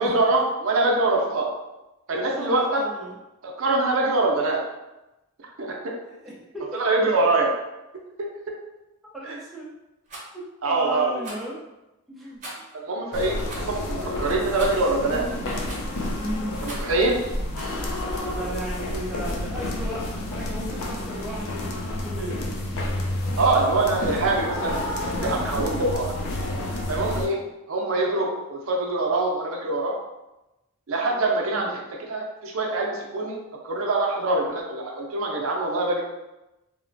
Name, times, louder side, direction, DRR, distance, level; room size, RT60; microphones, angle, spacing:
voice 1, 0.0-1.5 2.1-2.8 3.4-4.6 5.6-5.9 6.7-7.5 9.2-9.4 10.6-11.2 12.7-15.3 16.6-17.2 23.4-26.1 26.9-27.4 27.7-29.9 30.9-33.4 33.6-36.0, right 2 dB, 70° right, -1 dB, 0.5 m, -24 dB
voice 2, 2.1-3.2 6.0-6.8 9.1-9.7 10.3-11.6 12.1-12.6 16.2-16.6 18.2-22.4 25.1-25.8 31.5-31.7, right 1 dB, ahead, -7 dB, 0.4 m, -35 dB
Rattle, 10.0-10.3 11.2-11.5 12.4-12.7 13.5-13.7 14.6-14.9 15.7-16.0 16.6-17.0 17.5-17.8, right 1 dB, 35° right, 0.7 m, -39 dB
sound 1, 13.1-27.3, left 1 dB, 80° left, 0.4 m, -30 dB
3.0 x 2.1 x 2.5 m, 0.99 s
head